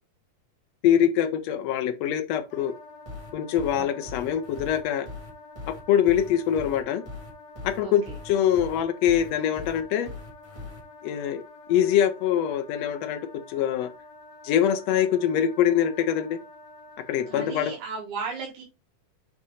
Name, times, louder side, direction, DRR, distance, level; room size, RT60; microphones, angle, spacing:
voice 1, 0.8-2.7 3.3-5.1 5.7-7.0 7.6-10.1 11.0-11.4 11.7-13.2 13.5-13.9 14.4-16.4 17.1-17.7, left 10 dB, 90° left, 1.4 m, -24 dB
Wind instrument woodwind instrument, 2.5-17.8, left 2 dB, 65° left, 2.4 m, -48 dB
sound 1, 3.0-10.8, left 3 dB, 15° right, 1.1 m, -40 dB
voice 2, 17.3-18.6, right 5 dB, 70° right, 2.7 m, -35 dB
7.2 x 2.8 x 4.8 m
omnidirectional pair, 3.7 m